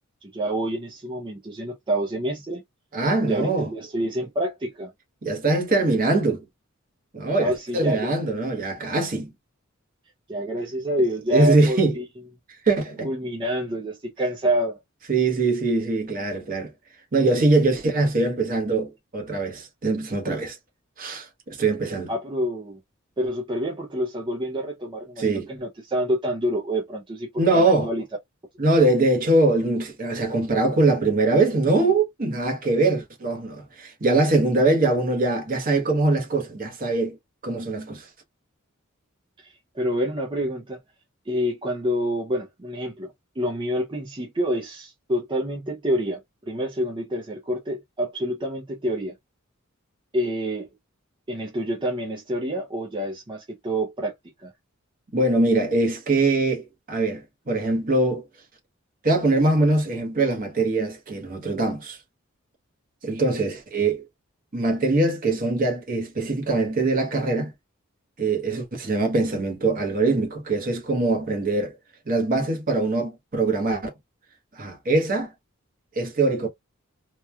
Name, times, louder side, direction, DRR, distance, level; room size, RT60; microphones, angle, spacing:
voice 1, 0.2-2.6 3.3-4.9 7.4-8.1 10.3-12.0 13.0-14.8 22.1-22.8 23.2-28.0 39.4-40.8 41.3-49.1 50.1-50.7 51.3-54.1 54.4-54.5, equal, 25° right, 0.5 m, -27 dB
voice 2, 2.9-3.7 5.2-6.4 7.1-9.3 11.3-12.0 12.6-13.1 15.1-16.7 17.1-20.6 21.0-22.1 25.2-25.5 27.4-27.9 28.6-37.2 37.4-38.1 55.1-58.2 59.0-62.0 63.0-64.0 64.5-67.5 68.2-71.8 72.1-73.9 74.6-75.3 75.9-76.5, right 2 dB, 40° right, 1.0 m, -22 dB
3.0 x 2.2 x 2.2 m
head